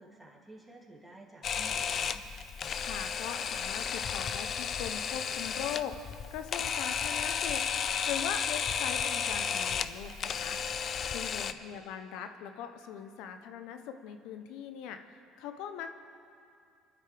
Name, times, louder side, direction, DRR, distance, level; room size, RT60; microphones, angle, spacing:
voice 1, 0.0-2.2 11.4-11.6, right 1 dB, 5° right, -3 dB, 2.8 m, -52 dB
Camera, 1.4-11.5, left 7 dB, 45° left, 0.5 m, -33 dB
voice 2, 2.8-7.6 8.0-10.6 11.1-15.0 15.4-16.0, left 8 dB, 75° left, 8 dB, 0.8 m, -40 dB
23.5 x 12.0 x 3.5 m, 2.5 s
supercardioid pair, 90°, 0 cm